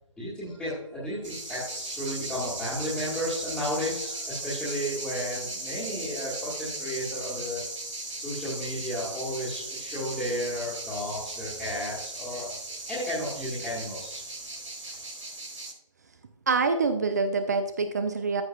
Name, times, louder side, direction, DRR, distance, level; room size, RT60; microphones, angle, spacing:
voice 1, 0.2-7.6 8.1-12.6 12.9-14.2 14.8-15.0, equal, ahead, -11 dB, 1.8 m, -33 dB
sound 1, 1.2-15.7, right 2 dB, 65° right, 3.5 m, -37 dB
voice 2, 16.5-18.4, right 4 dB, 30° right, 9 dB, 0.6 m, -26 dB
14.5 x 6.3 x 2.3 m, 0.84 s
figure-of-eight pair, 150°, 17 cm